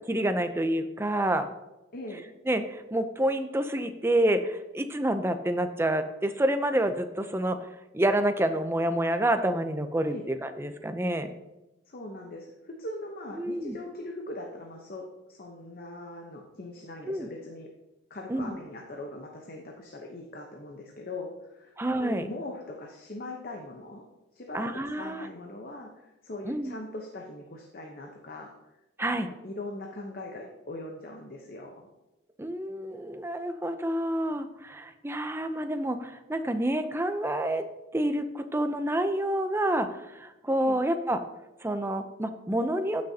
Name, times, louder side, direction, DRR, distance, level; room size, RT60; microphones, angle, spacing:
voice 1, 0.1-1.5 2.5-7.6 7.9-11.3 13.4-13.8 17.1-17.3 18.3-18.5 21.8-22.3 24.5-25.3 26.4-26.8 29.0-29.3 32.4-37.7 37.9-41.2 41.6-43.1, right 1 dB, 10° right, 9 dB, 0.5 m, -28 dB
voice 2, 1.9-2.2 10.1-10.3 11.9-17.7 18.1-24.0 24.3-24.7 25.0-28.5 29.2-31.9 40.6-40.8, left 2 dB, 50° left, 1 dB, 0.9 m, -41 dB
14.5 x 6.4 x 2.8 m, 0.99 s
head